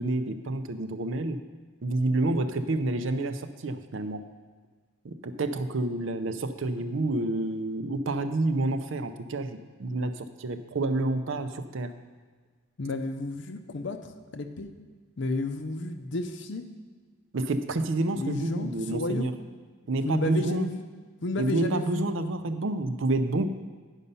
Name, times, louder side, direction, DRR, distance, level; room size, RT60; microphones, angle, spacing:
voice 1, 0.0-1.4 1.8-4.2 5.0-11.9 17.3-19.3 19.9-20.7 21.4-23.5, right 2 dB, 65° right, 9 dB, 0.5 m, -29 dB
voice 2, 12.8-14.7 15.2-16.6 18.1-19.3 20.0-20.8 21.2-22.1, left 2 dB, 55° left, 8 dB, 0.6 m, -32 dB
9.9 x 5.4 x 5.5 m, 1.5 s
head